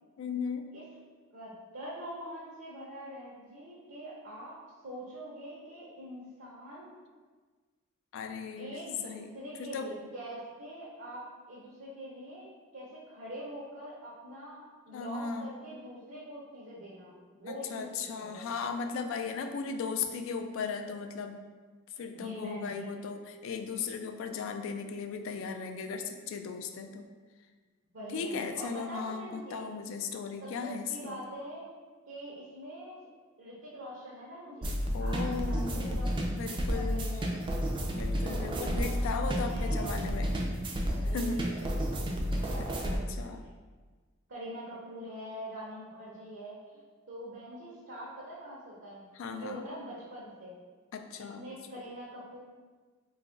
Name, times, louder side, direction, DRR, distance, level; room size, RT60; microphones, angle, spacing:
voice 1, 0.2-0.6 8.1-8.8 9.0-9.3 9.6-9.9 14.9-15.5 17.5-21.4 22.0-27.1 28.1-31.2 34.9-36.0 36.4-37.2 38.0-40.3 41.1-41.5 42.6-43.4 49.1-49.6 50.9-51.4, left 5 dB, 70° left, 6 dB, 0.3 m, -37 dB
voice 2, 1.3-4.6 4.8-6.9 8.6-18.5 22.1-22.9 27.9-29.6 30.4-31.6 32.1-33.0 33.4-36.3 36.7-37.3 38.6-40.0 40.9-42.1 42.5-43.2 44.3-46.8 47.1-50.5 51.2-52.4, equal, 65° right, -7 dB, 0.7 m, -44 dB
sound 1, 34.6-43.0, equal, 25° right, 0.4 m, -31 dB
3.0 x 2.4 x 3.6 m, 1.4 s
head